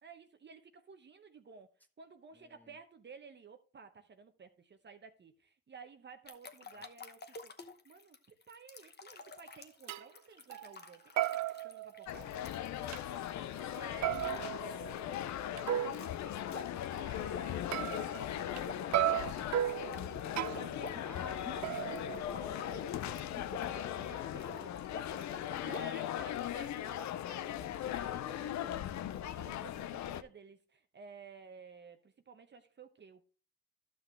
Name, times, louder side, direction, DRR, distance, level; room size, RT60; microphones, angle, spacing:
voice 1, 0.0-1.7 2.0-7.5 7.8-8.2 8.5-11.1 11.4-12.5 12.8-14.4 15.5-17.9 18.3-19.8 20.2-25.0 25.6-27.0 29.2-33.2, right 5 dB, 35° right, 0.9 m, -54 dB
voice 2, 2.3-2.8 6.7-6.8 13.3-13.5 14.0-14.5 21.0-22.5 27.0-27.1 27.5-28.9, equal, 5° left, 1.0 m, -54 dB
sound 1, 6.3-13.3 14.1-14.4 14.7-14.9 16.5-16.9 17.2-25.8, left 4 dB, 35° left, 1.0 m, -49 dB
sound 2, 9.3-9.4 9.9-10.1 10.5-10.9 11.2-12.4 12.9-13.0 14.0-16.1 17.7-18.6 18.9-20.8 21.6-22.8, right 13 dB, 65° right, 0.5 m, -35 dB
sound 3, 12.1-30.2, left 11 dB, 65° left, 0.6 m, -39 dB
12.0 x 6.0 x 3.3 m
cardioid pair, 90°, 30 cm